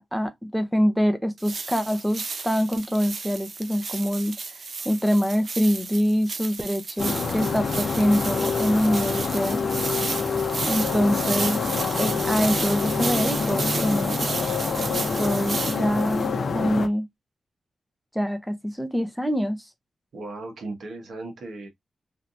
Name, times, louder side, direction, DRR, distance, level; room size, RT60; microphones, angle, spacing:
voice 1, 0.0-4.3 4.8-9.6 10.6-11.6 12.0-14.3 14.9-17.1 18.1-19.6, equal, ahead, 0.6 m, -25 dB
sound 1, 1.4-16.3, right 4 dB, 50° right, 0.5 m, -33 dB
sound 2, 7.0-16.9, left 5 dB, 60° left, 0.6 m, -26 dB
voice 2, 20.1-21.7, right 2 dB, 80° right, 1.2 m, -36 dB
3.3 x 2.7 x 2.4 m
wide cardioid pair, 135°, 0 cm